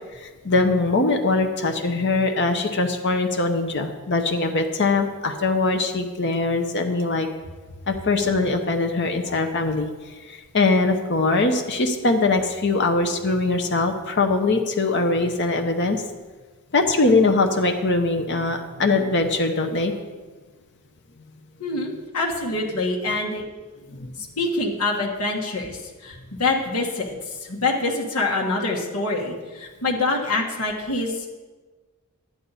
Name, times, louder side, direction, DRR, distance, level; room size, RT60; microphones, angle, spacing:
voice 1, 0.1-7.3 7.9-16.0 16.7-19.9 23.9-24.1, left 3 dB, 50° left, 5 dB, 0.8 m, -22 dB
voice 2, 21.6-23.4 24.2-27.1 27.5-31.3, left 2 dB, 80° left, -2 dB, 1.6 m, -25 dB
11.5 x 9.5 x 4.2 m, 1.3 s
head